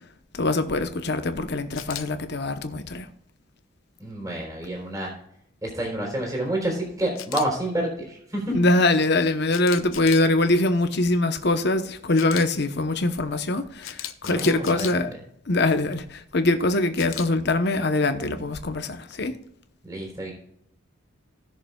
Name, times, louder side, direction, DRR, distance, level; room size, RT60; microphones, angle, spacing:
voice 1, 0.3-3.1 8.5-15.1 15.5-19.4, left 2 dB, 55° left, 1.0 m, -23 dB
Camera, 1.7-2.0 7.2-7.5 9.5-10.3 12.1-12.4 13.8-14.9 17.0-17.3, left 12 dB, 85° left, 0.8 m, -35 dB
voice 2, 4.0-5.1 5.6-8.5 14.2-15.0 19.8-20.3, right 1 dB, 20° right, 3.6 m, -29 dB
19.0 x 6.7 x 2.3 m
head